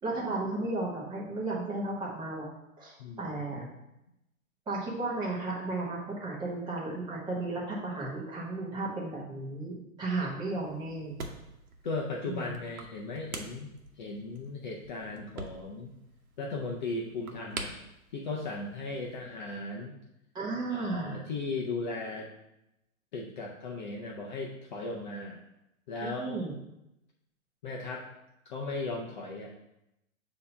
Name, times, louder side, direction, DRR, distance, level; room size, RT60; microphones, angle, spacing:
voice 1, 0.0-2.5 2.8-3.7 4.7-11.2 12.3-12.5 20.3-21.2 26.0-26.5, right 2 dB, 10° right, -5 dB, 1.1 m, -34 dB
voice 2, 3.0-3.3 11.8-15.9 16.4-17.8 18.1-20.0 20.7-22.3 23.1-25.4 25.9-26.4 27.6-28.1 28.5-29.5, left 3 dB, 35° left, -1 dB, 0.6 m, -37 dB
sound 1, 10.5-19.2, right 3 dB, 75° right, 1.1 m, -46 dB
6.2 x 2.9 x 5.4 m, 0.87 s
hypercardioid pair, 145°, 43 cm